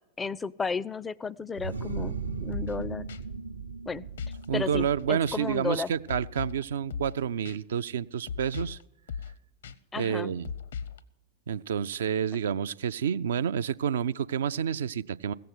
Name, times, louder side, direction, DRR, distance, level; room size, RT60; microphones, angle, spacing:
voice 1, 0.2-3.1 3.9-4.1 4.5-5.9 9.9-10.3, left 5 dB, 15° left, 22 dB, 0.4 m, -33 dB
sound 1, 1.6-7.1, right 4 dB, 80° right, 0.8 m, -38 dB
sound 2, 2.5-2.8 3.1-3.2 4.2-4.4 4.7-5.0 5.3-5.4 6.1-6.6 6.9-7.2 7.4-7.6 8.3-8.8 9.1-9.3 9.6-9.7 10.4-11.0, left 6 dB, 65° left, 0.7 m, -37 dB
voice 2, 4.5-8.8 9.9-10.5 11.5-15.3, right 8 dB, 60° right, 15 dB, 0.4 m, -29 dB
16.0 x 7.7 x 8.0 m, 0.87 s
figure-of-eight pair, 90°, 0 cm